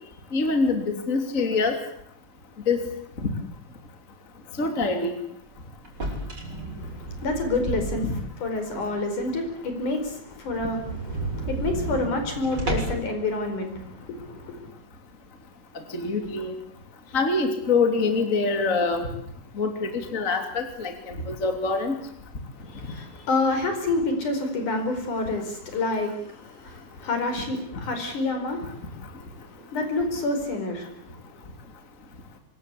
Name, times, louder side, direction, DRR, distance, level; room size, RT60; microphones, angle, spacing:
voice 1, 0.3-1.8 2.7-2.8 3.2-3.3 4.6-5.1 8.0-8.1 15.9-16.5 17.1-19.1 19.6-21.9, left 4 dB, 25° left, 5 dB, 3.2 m, -25 dB
sound 1, 5.8-8.4 8.8-8.9 9.3-9.4 9.7-9.8 10.1-10.2 10.5-13.1, right 2 dB, 30° right, 7.4 m, -32 dB
voice 2, 6.8-8.0 8.4-14.7 22.6-31.1, left 2 dB, 65° left, 6 dB, 6.3 m, -28 dB
25.5 x 23.0 x 8.5 m, 0.66 s
omnidirectional pair, 3.8 m